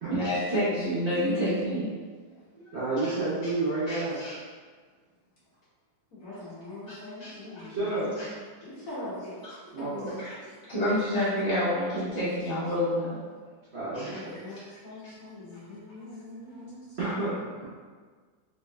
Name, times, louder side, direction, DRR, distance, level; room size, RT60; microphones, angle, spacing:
voice 1, 0.1-1.9 2.6-2.7 3.0-3.1 3.9-4.3 7.2-7.3 8.2-8.3 9.4-9.5 10.2-10.4 10.7-13.2 13.9-14.2 15.0-15.1, equal, 35° right, -13 dB, 0.4 m, -28 dB
voice 2, 2.7-4.2 7.7-8.2 9.7-10.2 13.7-14.6 15.1-15.2 16.2-16.3 17.0-17.6, right 2 dB, 50° right, -11 dB, 0.8 m, -31 dB
voice 3, 6.2-8.2 8.6-10.2 14.1-14.6 14.8-16.8, left 2 dB, 55° left, -9 dB, 1.2 m, -42 dB
3.4 x 3.1 x 2.3 m, 1.5 s
omnidirectional pair, 2.0 m